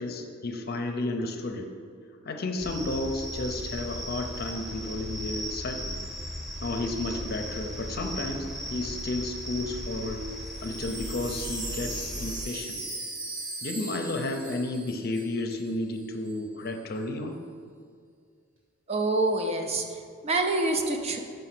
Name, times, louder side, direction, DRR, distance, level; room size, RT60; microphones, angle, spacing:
voice 1, 0.0-1.7 2.2-6.0 6.6-10.3 10.6-12.8 13.6-17.4, left 2 dB, 50° left, 4 dB, 0.6 m, -32 dB
sound 1, 2.6-12.5, equal, ahead, 0.9 m, -37 dB
Wind chime, 10.5-15.7 15.9-16.0 16.2-16.7, right 2 dB, 75° right, 1.7 m, -39 dB
voice 2, 18.9-21.2, right 2 dB, 30° right, 4 dB, 0.5 m, -27 dB
5.5 x 5.4 x 5.9 m, 2.2 s
head